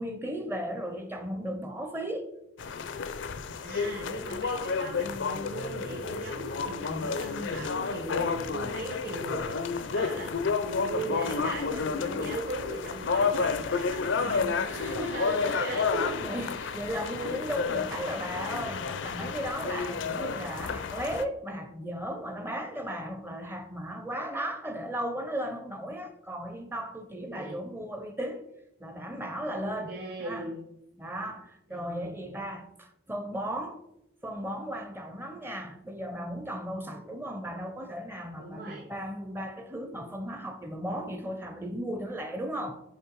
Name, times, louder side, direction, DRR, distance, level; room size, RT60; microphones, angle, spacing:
voice 1, 0.0-2.3 14.7-15.7 16.2-28.4 28.8-30.5 31.0-33.8 34.2-42.8, equal, 10° right, 0.5 m, -36 dB
sound 1, 2.6-21.2, left 5 dB, 70° left, 0.5 m, -31 dB
voice 2, 3.6-16.1 27.2-27.6 29.4-30.7 31.7-32.4 36.8-37.1 38.4-38.9, right 1 dB, 50° right, 1.1 m, -38 dB
6.5 x 5.0 x 4.6 m
head